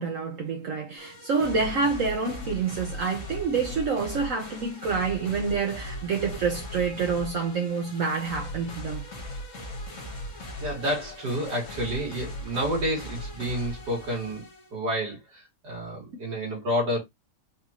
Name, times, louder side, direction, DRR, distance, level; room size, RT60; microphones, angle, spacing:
voice 1, 0.0-9.0, right 5 dB, 60° right, 1.0 m, -27 dB
sound 1, 1.0-14.7, left 1 dB, 50° left, 1.5 m, -39 dB
voice 2, 10.6-14.4 14.7-17.0, equal, 85° right, 2.8 m, -29 dB
4.8 x 2.5 x 2.8 m
omnidirectional pair, 1.8 m